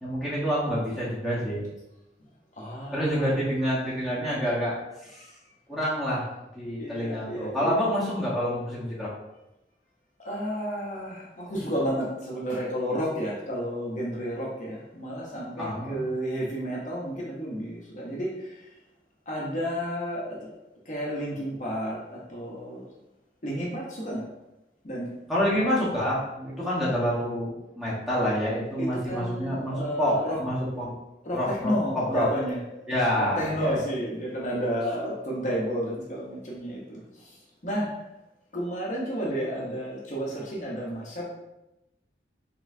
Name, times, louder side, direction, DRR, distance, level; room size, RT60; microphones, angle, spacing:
voice 1, 0.0-1.7 2.9-4.8 5.0-5.2 5.7-6.2 6.5-9.1 15.6-16.1 25.3-30.9 31.3-32.3 32.9-33.8, equal, ahead, -8 dB, 1.2 m, -27 dB
voice 2, 2.6-3.3 5.2-5.3 6.8-7.8 10.2-18.7 19.3-20.5 20.9-22.9 23.4-24.3 24.8-25.1 28.8-30.4 31.2-32.6 33.1-37.4 37.6-37.9 38.5-41.2, equal, 45° left, -4 dB, 0.9 m, -31 dB
4.1 x 3.7 x 2.7 m, 0.92 s
head